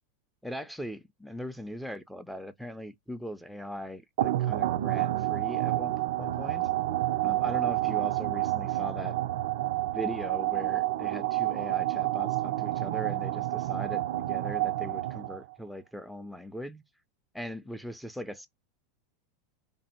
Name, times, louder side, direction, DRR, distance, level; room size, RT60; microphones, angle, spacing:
voice 1, 0.4-6.7 7.2-9.2 9.9-16.8 17.3-18.5, equal, ahead, 0.4 m, -40 dB
sound 1, 4.2-15.5, right 16 dB, 75° right, 0.4 m, -29 dB
3.4 x 2.6 x 4.1 m
supercardioid pair, 140°, 0 cm